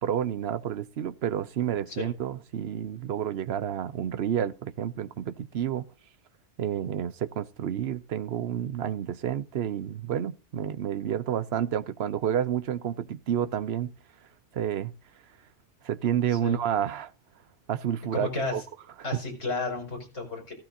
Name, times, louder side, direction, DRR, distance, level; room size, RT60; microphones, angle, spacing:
voice 1, 0.0-5.9 6.6-13.9 14.5-14.9 15.8-17.1 17.7-18.6, right 9 dB, 60° right, 0.9 m, -30 dB
voice 2, 18.1-18.6 19.0-20.5, left 3 dB, 75° left, 5.3 m, -32 dB
15.0 x 15.0 x 2.7 m
omnidirectional pair, 1.3 m